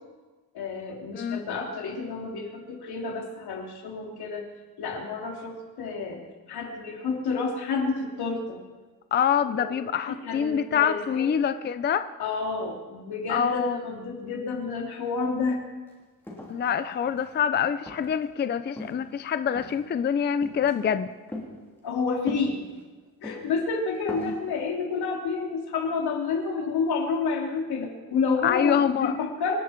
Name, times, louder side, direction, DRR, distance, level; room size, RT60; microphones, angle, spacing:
voice 1, 0.5-4.4 4.8-8.6 9.5-11.2 12.2-15.6 21.8-22.6 23.2-29.5, left 4 dB, 85° left, 0 dB, 3.4 m, -30 dB
voice 2, 9.1-12.1 13.3-13.8 16.5-21.1 24.2-24.3 28.4-29.1, left 8 dB, 30° left, 11 dB, 0.4 m, -25 dB
sound 1, 15.9-16.0 16.2-17.4 17.9-18.2 18.7-19.1 19.5-19.9 20.4-20.7 21.3-21.5 22.3-22.8 23.2-23.5 23.9-24.4, left 1 dB, 5° left, 3.2 m, -39 dB
26.0 x 11.5 x 4.5 m, 1.3 s
wide cardioid pair, 175°, 38 cm